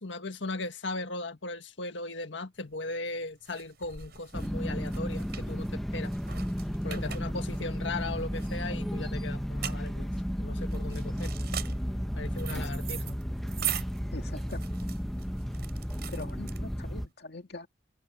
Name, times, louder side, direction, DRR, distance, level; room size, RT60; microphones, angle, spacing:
voice 1, 0.0-6.1 6.8-10.1 10.4-11.3 12.2-13.1, left 2 dB, 75° left, 1.7 m, -37 dB
sound 1, 2.6-17.0, right 11 dB, 55° right, 7.1 m, -41 dB
sound 2, 4.3-17.1, equal, ahead, 0.8 m, -33 dB
voice 2, 14.1-14.6 16.1-17.7, left 2 dB, 60° left, 2.4 m, -42 dB
head